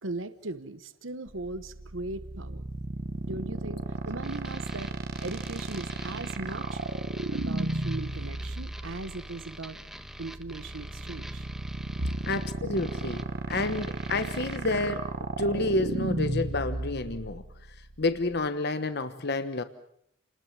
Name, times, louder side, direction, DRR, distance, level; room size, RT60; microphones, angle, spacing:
voice 1, 0.0-2.7 3.2-4.9 5.2-6.8 7.3-9.8 10.2-11.5 12.0-12.2, right 2 dB, 75° right, 12 dB, 1.1 m, -38 dB
sound 1, 1.3-18.5, right 2 dB, 55° right, 1.5 m, -34 dB
sound 2, 4.2-14.6, equal, ahead, 1.4 m, -46 dB
voice 2, 12.3-15.1 15.4-17.4 18.0-19.6, left 2 dB, 55° left, 10 dB, 1.2 m, -29 dB
30.0 x 20.5 x 7.5 m, 0.72 s
head